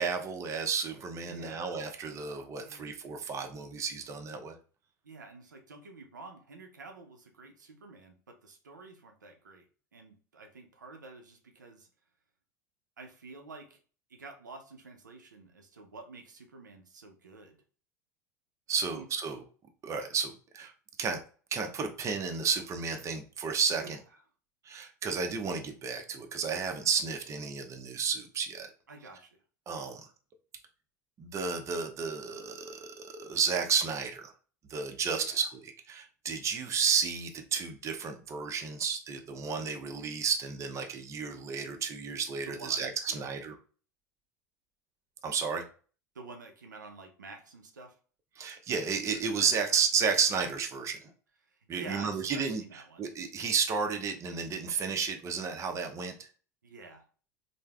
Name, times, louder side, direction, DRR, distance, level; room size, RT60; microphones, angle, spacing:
voice 1, 0.0-4.6 18.7-19.4 19.8-20.7 21.0-21.2 21.5-24.0 24.6-28.7 29.7-30.1 31.2-34.3 34.7-43.6 45.2-45.6 48.4-51.1 51.7-56.3, right 6 dB, 30° right, 5 dB, 0.5 m, -32 dB
voice 2, 1.2-1.8 2.6-2.9 5.0-11.9 13.0-13.8 14.1-17.6 18.9-19.1 23.8-23.9 28.9-29.4 35.1-35.4 42.5-43.3 46.1-48.0 49.3-49.8 51.5-53.1 56.6-57.1, right 3 dB, 90° right, 3 dB, 0.5 m, -49 dB
3.2 x 2.0 x 2.2 m, 0.40 s
hypercardioid pair, 80°, 10 cm